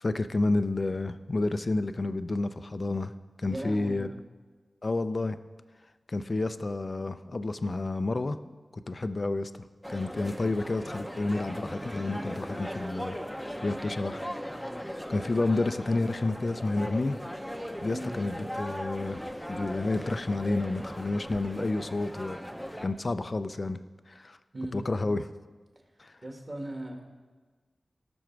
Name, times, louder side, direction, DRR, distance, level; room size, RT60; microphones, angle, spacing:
voice 1, 0.0-3.1 3.4-4.1 4.8-5.4 6.1-8.4 8.7-9.5 9.9-14.2 15.1-17.2 17.8-19.2 19.5-22.4 22.8-23.8 24.1-24.4 24.7-25.3 26.0-26.1, left 2 dB, 40° left, 11 dB, 0.5 m, -30 dB
voice 2, 3.5-4.0 17.9-18.1 24.5-24.8 26.2-27.1, right 1 dB, 35° right, 2 dB, 1.8 m, -37 dB
sound 1, 9.8-22.9, equal, ahead, 0.8 m, -38 dB
18.0 x 6.2 x 4.6 m, 1.4 s
wide cardioid pair, 105°, 0 cm